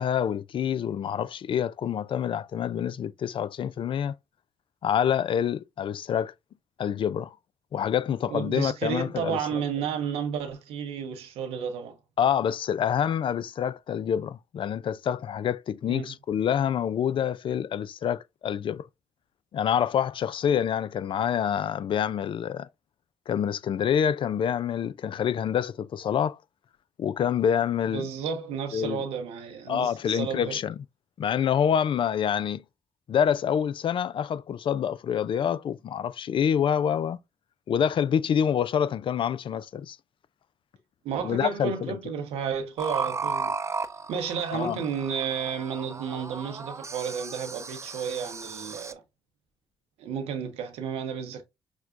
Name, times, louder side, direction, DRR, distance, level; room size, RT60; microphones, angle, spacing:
voice 1, 0.0-4.1 4.8-6.3 6.8-7.4 7.7-9.6 12.2-18.8 19.5-22.7 23.3-26.4 27.0-28.1 28.7-29.0 29.7-30.8 31.2-32.6 33.1-37.2 37.7-40.0 41.2-42.0 44.5-44.8, left 8 dB, 55° left, 0.3 m, -27 dB
voice 2, 8.3-12.0 15.9-16.1 27.9-30.6 41.0-43.5 44.1-49.0 50.0-51.4, right 7 dB, 80° right, 0.9 m, -32 dB
sound 1, 42.8-48.9, right 4 dB, 30° right, 0.6 m, -35 dB
6.1 x 2.2 x 2.4 m
hypercardioid pair, 45°, 10 cm